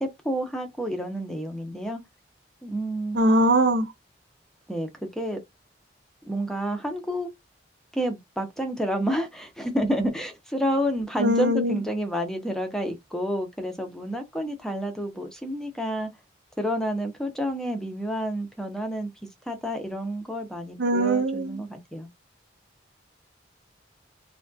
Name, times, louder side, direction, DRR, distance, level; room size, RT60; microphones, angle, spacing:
voice 1, 0.0-2.0 2.6-3.2 4.7-5.4 6.2-7.3 7.9-16.1 16.6-19.1 19.5-22.1, equal, 5° left, 0.5 m, -29 dB
voice 2, 3.1-3.8 11.2-11.8 20.8-21.6, right 1 dB, 65° right, 0.5 m, -21 dB
3.3 x 2.2 x 2.6 m
head